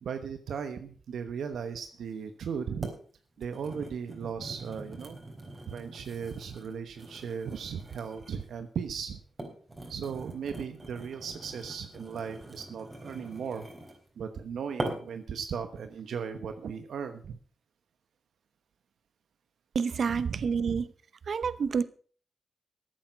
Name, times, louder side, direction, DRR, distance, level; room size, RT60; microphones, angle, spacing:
voice 1, 0.0-2.9 3.4-5.2 5.7-9.2 9.9-13.7 14.2-17.4 20.1-20.8, right 6 dB, 80° right, 1.1 m, -37 dB
sound 1, 2.0-2.1 2.8-3.0 3.4-8.5 9.2-14.1 14.8-15.2 15.8-16.0, right 1 dB, 25° right, 3.9 m, -42 dB
voice 2, 19.7-20.9 21.3-21.8, right 6 dB, 60° right, 0.8 m, -28 dB
14.0 x 8.6 x 5.8 m
cardioid pair, 70°, 0 cm